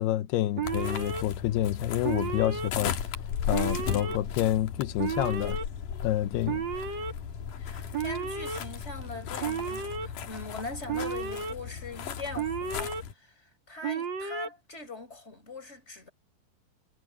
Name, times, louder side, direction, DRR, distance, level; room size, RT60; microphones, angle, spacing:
voice 1, 0.0-3.0 3.5-5.6 6.0-6.6, left 14 dB, 90° left, 2.9 m, -28 dB
sound 1, 0.6-13.1, left 8 dB, 60° left, 3.0 m, -36 dB
Alarm, 0.6-1.2 2.0-2.7 3.5-4.2 5.0-5.6 6.4-7.1 7.9-8.6 9.4-10.1 10.9-11.5 12.3-13.0 13.8-14.5, right 6 dB, 60° right, 1.2 m, -33 dB
voice 2, 7.6-13.3 13.7-16.1, left 3 dB, 15° left, 5.4 m, -41 dB
omnidirectional pair, 4.5 m